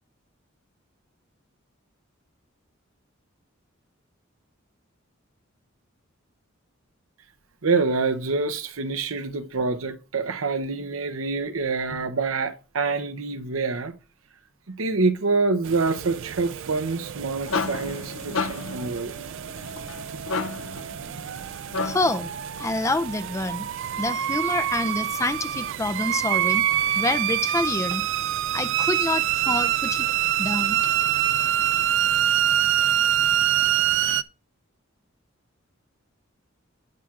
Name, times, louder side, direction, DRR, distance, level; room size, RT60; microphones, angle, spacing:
voice 1, 7.6-13.9 14.7-19.1, right 4 dB, 85° right, 0.8 m, -26 dB
sound 1, 15.6-34.2, right 11 dB, 65° right, 0.3 m, -26 dB
sound 2, 17.0-22.3, left 4 dB, 70° left, 0.5 m, -32 dB
voice 2, 21.8-22.3 22.6-23.7 24.0-26.6 26.9-28.0 28.5-30.1 30.4-30.8, left 2 dB, 15° left, 0.4 m, -27 dB
17.0 x 5.9 x 2.4 m
head